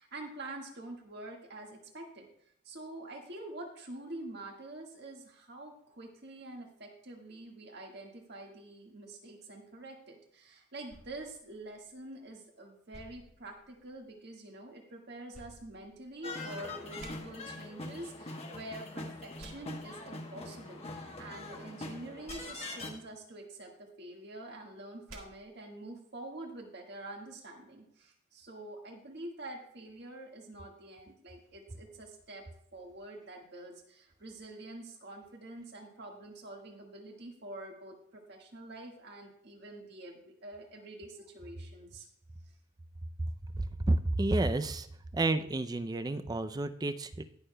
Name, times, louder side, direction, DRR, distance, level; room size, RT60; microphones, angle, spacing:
voice 1, 0.0-2.3 2.6-32.4 32.7-42.1, right 2 dB, 55° right, 1 dB, 1.6 m, -46 dB
sound 1, 10.9-12.3 12.9-14.2 15.3-16.5 17.0-17.1 19.4-19.5 22.3-22.4 25.1-25.2, right 2 dB, 85° right, 1.8 m, -53 dB
sound 2, 16.2-22.9, left 2 dB, 30° left, 1.0 m, -43 dB
voice 2, 43.5-44.9 45.1-47.2, right 2 dB, 20° right, 10 dB, 0.4 m, -30 dB
19.0 x 6.5 x 2.2 m, 0.68 s
head